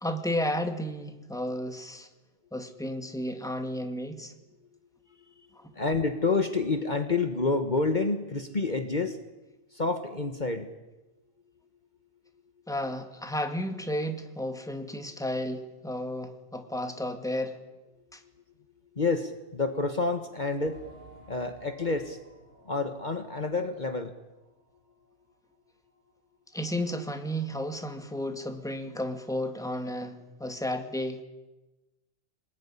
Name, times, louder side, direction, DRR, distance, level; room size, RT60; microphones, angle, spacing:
voice 1, 0.0-2.1 2.5-4.3 5.6-5.7 12.7-17.6 18.1-18.2 26.5-31.2, equal, 5° left, 7 dB, 2.0 m, -33 dB
voice 2, 5.7-9.2 9.7-10.7 18.9-20.8 21.3-22.2 22.6-24.1, left 3 dB, 40° left, 8 dB, 1.6 m, -28 dB
sound 1, 20.6-24.9 25.2-25.3 25.9-26.0, right 2 dB, 75° left, 6.0 m, -55 dB
25.5 x 20.5 x 9.9 m, 1.1 s
omnidirectional pair, 1.2 m